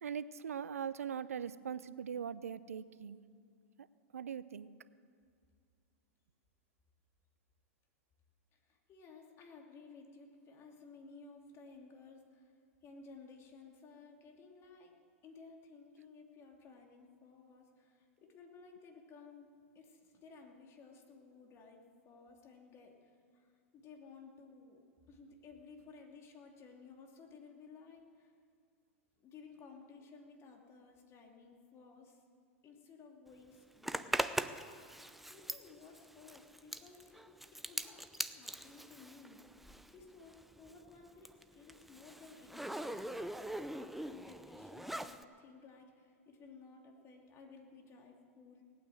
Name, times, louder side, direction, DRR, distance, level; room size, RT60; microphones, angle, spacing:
voice 1, 0.0-3.2 3.8-3.9 4.1-4.7, right 7 dB, 85° right, 16 dB, 0.6 m, -41 dB
voice 2, 8.5-12.5 12.8-14.9 15.2-19.5 19.7-28.3 29.2-32.2 32.6-34.2 35.3-39.4 39.9-43.1 43.7-48.6, left 4 dB, 35° left, 2 dB, 2.8 m, -56 dB
Zipper (clothing), 33.8-40.0 40.3-45.2, right 1 dB, ahead, 0.6 m, -41 dB
18.5 x 9.2 x 7.9 m, 2.2 s
hypercardioid pair, 105°, 8 cm